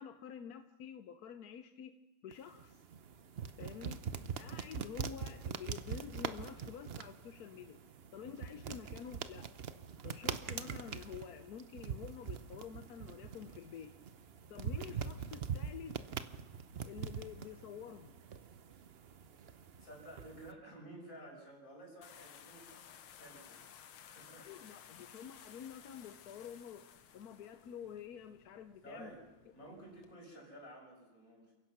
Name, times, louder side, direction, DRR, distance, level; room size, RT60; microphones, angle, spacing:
voice 1, 0.0-1.9 2.2-2.8 3.6-4.0 4.4-7.8 8.1-9.5 10.0-13.9 14.5-15.9 16.8-18.2 24.4-26.8 27.1-29.1, left 8 dB, 60° left, 8 dB, 1.1 m, -49 dB
sound 1, 2.3-20.5, right 7 dB, 85° right, 0.5 m, -43 dB
voice 2, 19.4-25.2 28.8-29.3 29.5-31.5, right 1 dB, 40° left, -1 dB, 6.6 m, -54 dB
sound 2, 22.0-30.1, left 9 dB, 85° left, 1.9 m, -57 dB
29.0 x 16.5 x 6.0 m, 1.1 s
omnidirectional pair, 2.2 m